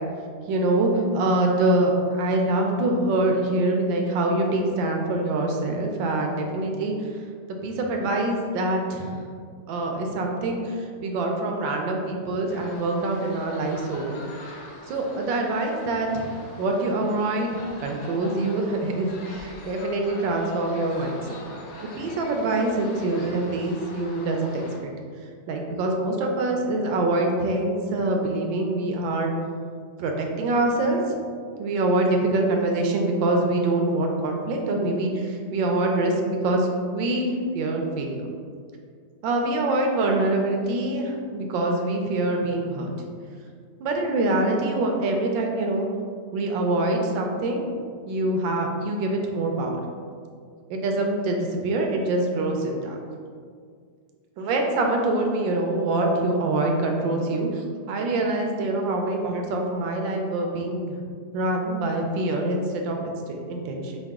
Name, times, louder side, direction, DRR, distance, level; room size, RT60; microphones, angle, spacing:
voice 1, 0.5-7.2 7.6-9.2 9.7-14.2 14.9-21.4 22.0-24.9 25.5-29.3 30.0-31.2 31.6-36.7 36.9-38.3 39.2-42.9 43.8-45.9 46.3-47.7 48.1-49.8 50.7-53.0 54.4-61.0 61.3-64.0, right 2 dB, 90° right, 2 dB, 1.3 m, -25 dB
sound 1, 12.5-24.8, left 2 dB, 70° left, 0.8 m, -43 dB
4.7 x 2.3 x 3.5 m, 2.1 s
omnidirectional pair, 2.0 m